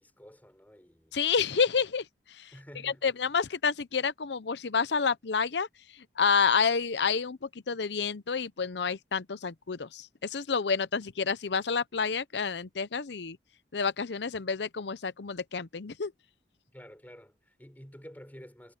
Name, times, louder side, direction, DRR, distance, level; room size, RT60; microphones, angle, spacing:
voice 1, 0.0-1.2 2.5-3.2 16.7-18.7, equal, 10° left, 4.1 m, -50 dB
voice 2, 1.1-2.0 2.4-2.5 2.8-5.7 6.2-13.4 13.7-16.1, left 5 dB, 75° left, 0.7 m, -29 dB
head